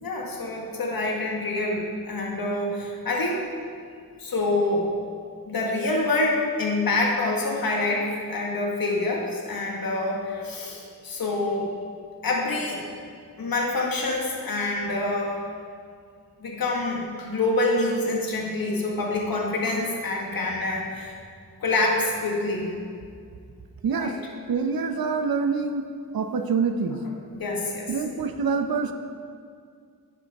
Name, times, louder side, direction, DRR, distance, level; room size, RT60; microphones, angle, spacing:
voice 1, 0.0-3.5 4.2-4.9 5.5-11.7 12.2-12.8 13.4-15.4 16.4-21.2 21.6-22.7 23.9-24.1 27.3-27.9, left 2 dB, 80° left, -1 dB, 1.8 m, -26 dB
voice 2, 23.8-24.2 24.5-25.8 26.1-27.0 27.9-28.9, right 5 dB, 80° right, 7 dB, 0.7 m, -25 dB
12.0 x 10.0 x 3.6 m, 2.3 s
wide cardioid pair, 80°, 35 cm